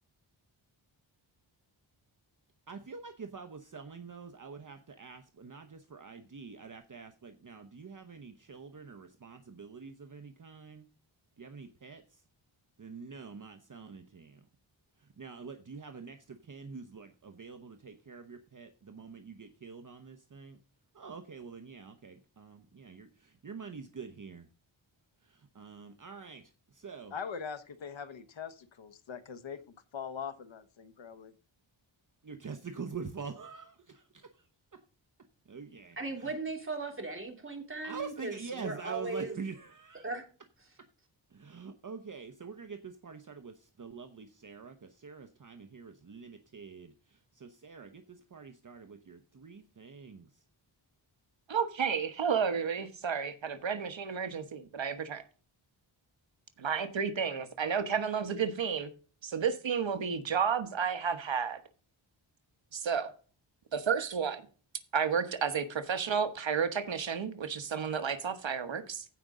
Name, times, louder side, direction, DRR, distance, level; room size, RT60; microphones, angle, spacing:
voice 1, 2.7-10.9 11.4-12.2 12.8-14.4 15.0-20.6 20.9-24.5 25.2-27.1 32.2-34.5 34.7-34.8 35.5-36.3 37.8-40.1 41.3-50.3, right 5 dB, 40° right, 0.9 m, -46 dB
voice 2, 27.1-29.6 29.9-31.3, left 6 dB, 70° left, 1.1 m, -42 dB
voice 3, 36.0-39.4 40.0-40.2, right 3 dB, 25° right, 3.1 m, -37 dB
voice 4, 51.5-55.2 56.6-58.9 59.2-61.6 62.7-63.1 63.7-64.5 64.9-69.0, right 6 dB, 70° right, 1.2 m, -31 dB
15.5 x 5.2 x 3.7 m
wide cardioid pair, 105°, 47 cm